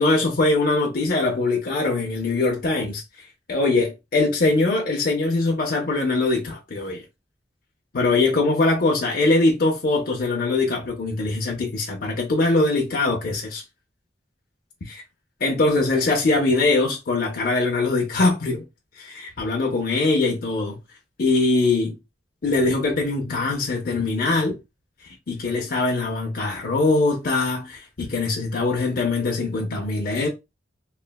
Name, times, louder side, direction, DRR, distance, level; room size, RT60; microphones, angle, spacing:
voice 1, 0.0-3.0 3.5-7.0 7.9-13.6 14.9-15.0 15.4-18.6 19.0-20.8 21.2-21.9 22.4-24.6 25.3-30.3, left 3 dB, 55° left, 0.5 m, -22 dB
3.1 x 2.1 x 2.2 m
head